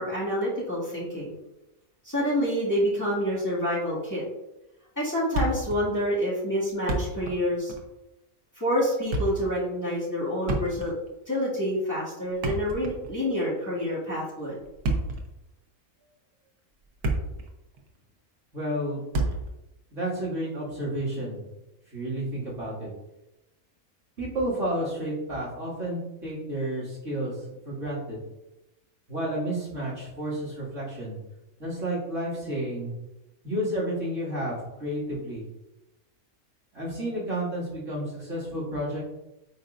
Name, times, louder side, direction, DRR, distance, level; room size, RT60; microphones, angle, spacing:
voice 1, 0.0-1.3 2.0-4.2 5.0-7.7 8.6-10.9 11.3-14.6, equal, 10° left, -9 dB, 2.1 m, -27 dB
Thump thud, 5.3-5.9 6.1-6.2 6.7-7.4 7.7-7.9 8.8-9.5 10.4-11.1 12.2-13.2 14.6-15.3 16.0-16.2 16.7-17.5 17.7-17.9 19.1-19.6, right 2 dB, 90° right, 1.5 m, -29 dB
voice 2, 18.5-19.0 19.9-21.4 21.9-22.9 24.2-27.4 27.6-28.2 29.1-31.2 31.6-32.9 33.4-35.4 36.7-39.0, right 1 dB, 55° right, -8 dB, 2.6 m, -31 dB
9.3 x 4.4 x 2.5 m, 0.95 s
omnidirectional pair, 1.5 m